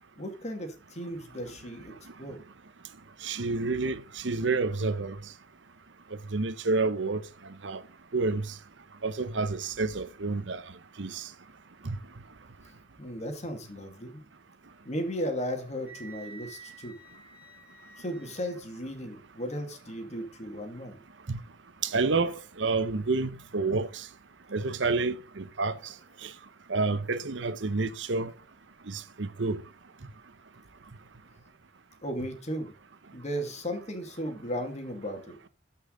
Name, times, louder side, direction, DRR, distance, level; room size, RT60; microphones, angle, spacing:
voice 1, 0.2-1.9 2.2-2.4 13.0-14.2 14.8-16.9 18.0-21.0 32.0-32.7 33.1-35.3, equal, 35° left, 2.3 m, -35 dB
voice 2, 3.2-5.2 6.3-7.2 7.6-7.8 8.1-8.5 9.0-10.6 11.0-11.2 11.9-12.0 21.3-21.4 21.8-24.0 24.5-25.8 26.2-26.3 26.7-28.3 28.9-29.6, right 3 dB, 75° right, 0.9 m, -29 dB
Wind instrument woodwind instrument, 15.8-18.6, right 4 dB, 10° right, 2.6 m, -50 dB
13.0 x 5.5 x 3.9 m
head